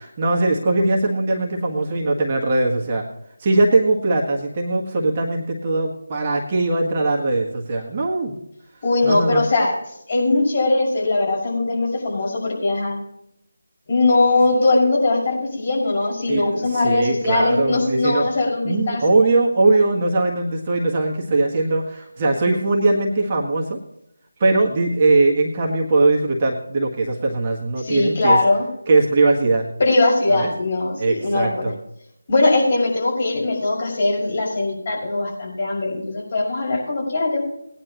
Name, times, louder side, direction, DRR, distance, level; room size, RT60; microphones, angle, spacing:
voice 1, 0.2-3.0 3.4-8.4 9.0-9.4 16.3-18.3 18.6-23.8 24.4-28.4 28.9-29.7 30.3-30.5 31.0-31.7, right 2 dB, 25° right, -1 dB, 1.6 m, -20 dB
voice 2, 8.8-9.7 10.1-13.0 13.9-19.0 27.8-28.7 29.8-31.7 32.3-37.4, left 2 dB, 40° left, -3 dB, 5.6 m, -20 dB
19.0 x 10.0 x 3.0 m, 0.78 s
figure-of-eight pair, 165°, 0 cm